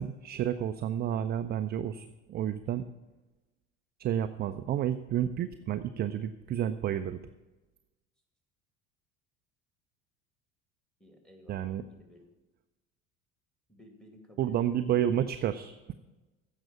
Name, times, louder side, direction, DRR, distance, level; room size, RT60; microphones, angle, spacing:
voice 1, 0.0-2.9 4.0-7.2 11.5-11.8 14.4-15.9, right 10 dB, 25° right, 10 dB, 0.5 m, -30 dB
voice 2, 11.0-12.2 13.7-15.0, left 1 dB, ahead, 4 dB, 2.3 m, -55 dB
15.0 x 5.6 x 7.3 m, 1.1 s
figure-of-eight pair, 65°, 38 cm